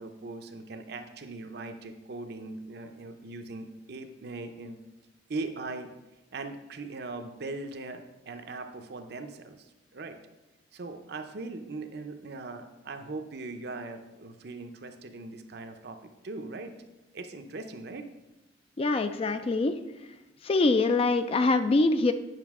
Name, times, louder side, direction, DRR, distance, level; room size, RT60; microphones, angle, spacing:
voice 1, 0.0-4.8 5.3-5.9 6.3-10.2 10.7-16.0 16.2-16.7 17.1-18.1, right 3 dB, 60° right, 7 dB, 0.6 m, -40 dB
voice 2, 18.8-19.8 20.4-22.1, left 3 dB, 30° left, 9 dB, 0.3 m, -24 dB
9.0 x 5.5 x 3.6 m, 1.0 s
head